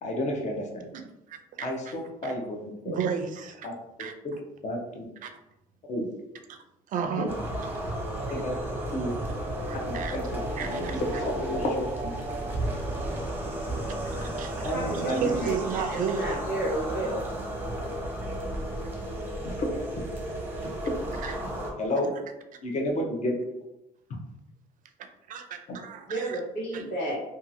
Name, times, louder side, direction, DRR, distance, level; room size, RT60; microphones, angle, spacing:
voice 1, 0.0-0.7 1.6-3.0 3.6-3.7 4.6-5.0 5.9-6.1 7.2-7.3 8.3-8.5 8.9-9.1 10.1-12.1 14.6-15.4 19.6-19.8 21.8-22.1 22.6-23.3, left 1 dB, 45° left, 0 dB, 0.7 m, -30 dB
voice 2, 1.3-1.9 2.2-2.3 2.9-3.7 4.0-4.1 5.2-5.3 6.5-6.6 6.9-7.3 9.7-10.2 10.6-11.0 14.2-16.4 21.2-21.3 25.3-26.4 26.7-26.8, right 6 dB, 50° right, 7 dB, 0.4 m, -33 dB
sound 1, 7.3-21.7, right 1 dB, 10° right, 0.7 m, -33 dB
voice 3, 14.7-15.1 15.4-17.2 26.1-27.2, right 1 dB, 85° left, -7 dB, 1.3 m, -32 dB
2.8 x 2.4 x 2.6 m, 0.89 s
cardioid pair, 110°, 17 cm